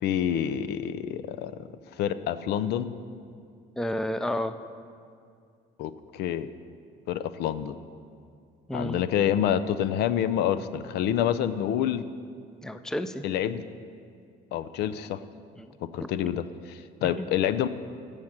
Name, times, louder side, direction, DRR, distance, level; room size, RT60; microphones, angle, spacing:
voice 1, 0.0-1.5 2.0-2.9 5.8-6.5 7.1-7.8 8.7-12.0 13.2-13.6 14.5-15.2 15.9-17.7, left 10 dB, 80° left, 13 dB, 0.5 m, -27 dB
voice 2, 3.8-4.6 8.7-9.0 12.6-13.2 15.6-15.7 16.0-16.1 17.2-17.3, left 1 dB, 5° left, 10 dB, 0.4 m, -31 dB
16.0 x 6.6 x 5.9 m, 2.3 s
cardioid pair, 110°, 17 cm